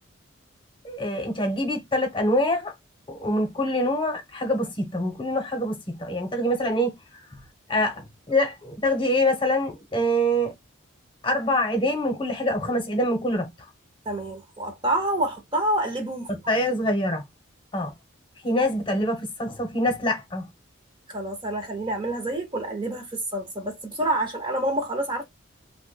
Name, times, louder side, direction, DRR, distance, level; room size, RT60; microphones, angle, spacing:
voice 1, 0.8-2.7 3.1-7.4 7.7-10.5 11.2-13.7 16.5-17.2 17.7-17.9 18.4-20.5, left 1 dB, 25° left, 0.9 m, -25 dB
voice 2, 14.1-16.3 21.1-25.2, right 1 dB, 25° right, 0.7 m, -27 dB
3.0 x 2.2 x 3.2 m
head